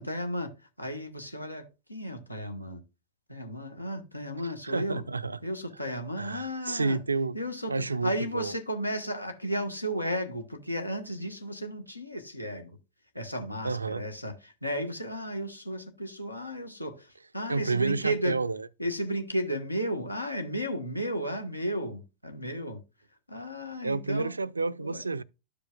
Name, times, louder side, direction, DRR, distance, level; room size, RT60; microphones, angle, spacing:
voice 1, 0.0-2.8 3.3-5.0 5.4-7.0 7.3-12.8 13.1-18.4 18.8-22.8 23.3-24.4 24.8-25.0, equal, 85° left, 1.1 m, -34 dB
voice 2, 4.4-5.4 6.2-7.4 7.7-8.5 13.6-14.0 17.5-18.7 23.8-25.2, right 3 dB, 80° right, 0.3 m, -30 dB
13.0 x 5.1 x 2.3 m
figure-of-eight pair, 90°, 0 cm